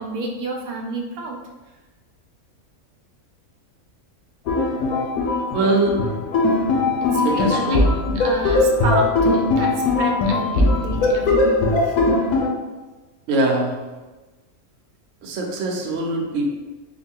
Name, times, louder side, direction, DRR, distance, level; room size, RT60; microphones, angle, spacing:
voice 1, 0.0-1.4 6.4-6.7 7.0-12.1, right 2 dB, 85° right, 0 dB, 1.1 m, -30 dB
sound 1, 4.5-12.5, left 2 dB, 90° left, 1.1 m, -20 dB
voice 2, 5.5-6.0 7.2-7.9 13.3-13.8 15.2-16.5, right 2 dB, 65° right, 0 dB, 1.0 m, -22 dB
3.7 x 2.2 x 3.5 m, 1.2 s
omnidirectional pair, 1.5 m